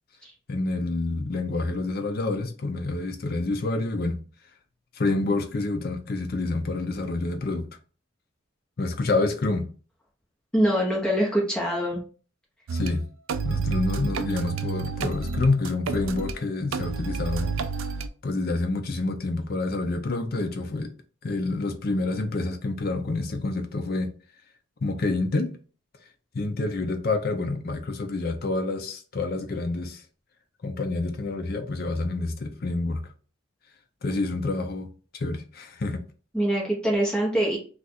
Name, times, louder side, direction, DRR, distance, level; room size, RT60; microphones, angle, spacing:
voice 1, 0.5-4.2 4.9-7.7 8.8-9.7 12.7-13.0 13.4-17.5 18.2-20.9 21.2-24.1 24.8-25.6 26.3-30.0 30.6-33.0 34.0-36.0, left 2 dB, 45° left, 0.5 m, -28 dB
voice 2, 10.5-12.0 36.3-37.6, right 1 dB, 5° left, 0.9 m, -24 dB
sound 1, 12.7-12.9 13.3-16.4 16.7-18.1, right 5 dB, 65° right, 0.3 m, -29 dB
2.4 x 2.4 x 4.0 m
head